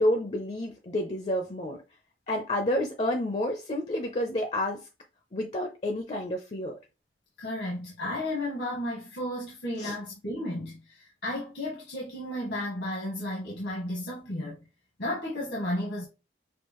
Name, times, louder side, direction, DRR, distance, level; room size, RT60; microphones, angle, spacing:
voice 1, 0.0-1.8 2.3-4.9 5.3-6.8 9.8-10.0, left 1 dB, 35° left, 0.6 m, -29 dB
voice 2, 7.4-14.6 15.0-16.0, left 1 dB, 75° left, 1.4 m, -33 dB
6.4 x 2.5 x 3.0 m
head